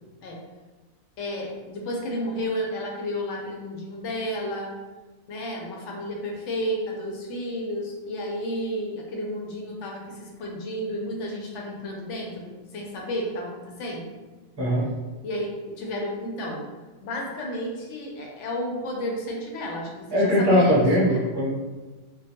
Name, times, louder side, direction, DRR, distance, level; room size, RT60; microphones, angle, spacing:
voice 1, 1.2-4.7 5.3-14.1 15.2-16.6 17.0-21.3, equal, 90° left, -1 dB, 0.9 m, -32 dB
voice 2, 20.1-21.5, equal, 30° right, -6 dB, 0.5 m, -20 dB
2.3 x 2.2 x 2.8 m, 1.2 s
omnidirectional pair, 1.2 m